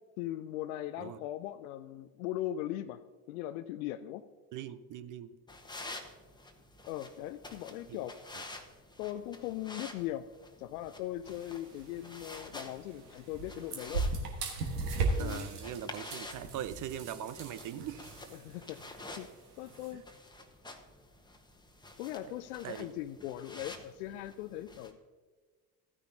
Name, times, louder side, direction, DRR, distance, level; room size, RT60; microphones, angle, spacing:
voice 1, 0.2-3.0 3.3-4.2 6.9-8.1 9.0-10.3 10.6-14.1 15.2-15.5 18.4-19.3 19.6-20.0 22.0-25.0, left 13 dB, 65° left, 12 dB, 0.5 m, -39 dB
voice 2, 4.5-5.3 7.9-8.0 15.2-18.0 19.9-20.0 22.2-22.3 22.6-22.9 23.6-23.7, right 10 dB, 40° right, 13 dB, 0.6 m, -41 dB
sound 1, 5.5-24.9, left 2 dB, 10° left, 1.2 m, -50 dB
sound 2, 11.2-19.9, right 3 dB, 75° right, 1.4 m, -38 dB
14.5 x 9.8 x 2.7 m, 1.5 s
figure-of-eight pair, 55°, 47 cm